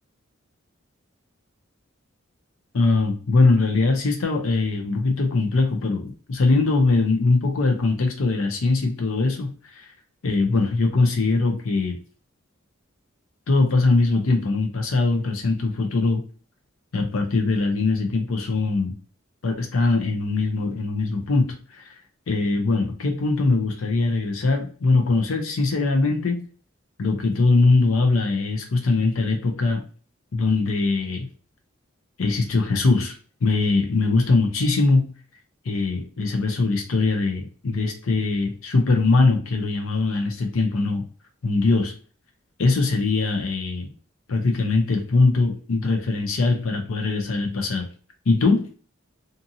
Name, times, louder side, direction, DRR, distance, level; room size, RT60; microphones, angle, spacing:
voice 1, 2.7-9.9 10.2-12.0 13.5-16.3 16.9-18.9 19.4-21.9 22.3-26.5 27.0-29.8 30.3-31.3 32.2-33.2 33.4-35.1 35.6-41.1 41.4-41.9 42.6-43.9 44.3-47.9 48.3-48.7, left 3 dB, 80° left, 3 dB, 0.5 m, -21 dB
2.7 x 2.6 x 2.5 m, 0.39 s
head